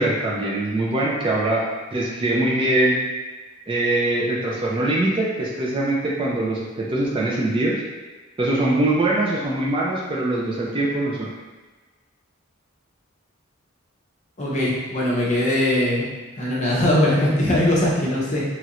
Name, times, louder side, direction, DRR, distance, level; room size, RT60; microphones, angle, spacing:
voice 1, 0.0-1.7 1.9-3.0 3.7-7.8 8.4-11.3, right 1 dB, 25° right, -4 dB, 0.3 m, -22 dB
voice 2, 14.4-16.1 16.4-18.4, left 1 dB, 35° left, -5 dB, 0.6 m, -20 dB
3.0 x 2.4 x 2.9 m, 1.3 s
head